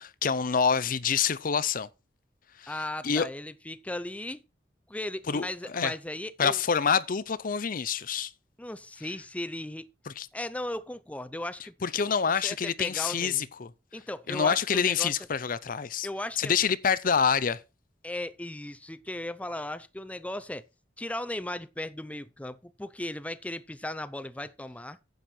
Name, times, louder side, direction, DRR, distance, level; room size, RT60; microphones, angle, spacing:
voice 1, 0.0-1.9 2.6-2.7 3.0-3.3 5.3-5.9 6.4-8.3 10.1-10.3 11.8-13.7 14.3-16.1 16.4-17.6, left 6 dB, 50° left, 0.6 m, -27 dB
voice 2, 2.7-4.4 4.9-6.6 8.6-9.9 10.3-13.4 13.9-15.1 16.0-16.5 18.0-20.7 21.0-25.0, left 1 dB, 10° left, 0.5 m, -37 dB
10.0 x 7.8 x 4.4 m
head